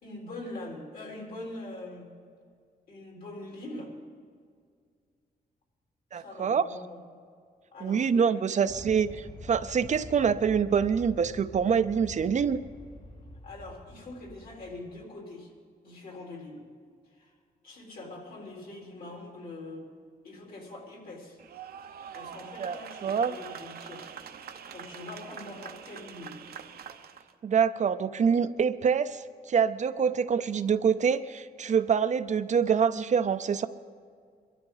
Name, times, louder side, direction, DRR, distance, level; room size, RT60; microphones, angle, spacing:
voice 1, 0.0-2.1 2.9-3.9 6.1-7.0 7.7-8.6 13.4-15.5 15.8-16.6 17.1-17.3 17.6-19.9 20.2-21.4 22.1-24.1 24.7-26.4, left 2 dB, 65° left, -1 dB, 4.0 m, -43 dB
voice 2, 6.1-6.6 7.8-12.6 22.6-22.8 23.0-23.3 27.4-33.7, right 7 dB, 50° right, 12 dB, 0.5 m, -25 dB
Aircraft, 8.7-15.0, left 1 dB, 50° left, 2.7 m, -46 dB
sound 1, 21.4-27.3, right 8 dB, 75° right, 0.8 m, -44 dB
22.0 x 12.5 x 4.0 m, 2.1 s
cardioid pair, 110°, 16 cm